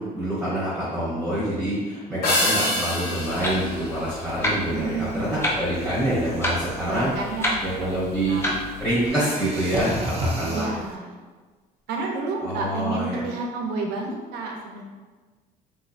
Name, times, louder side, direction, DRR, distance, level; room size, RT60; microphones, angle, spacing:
voice 1, 0.0-7.1 7.6-8.5 8.8-10.7 12.4-13.2, right 1 dB, 5° right, -9 dB, 1.1 m, -26 dB
sound 1, 2.2-4.9, left 1 dB, 70° left, 1.0 m, -26 dB
voice 2, 2.3-2.7 4.7-5.3 6.8-8.4 10.4-11.2 11.9-14.8, right 3 dB, 80° right, 1 dB, 0.7 m, -31 dB
Clock, 3.2-9.1, left 1 dB, 15° left, 0.6 m, -31 dB
sound 2, 5.7-10.9, right 1 dB, 35° right, 0.6 m, -35 dB
3.5 x 3.0 x 2.5 m, 1.4 s
cardioid pair, 110°, 17 cm